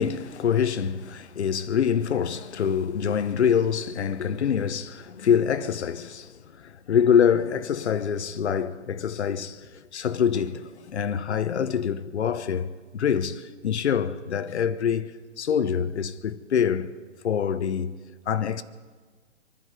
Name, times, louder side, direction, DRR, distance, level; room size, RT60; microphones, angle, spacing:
voice 1, 0.0-16.9 17.2-18.0 18.3-18.6, left 8 dB, 60° left, 1.0 m, -25 dB
25.5 x 10.5 x 5.2 m
figure-of-eight pair, 135°, 38 cm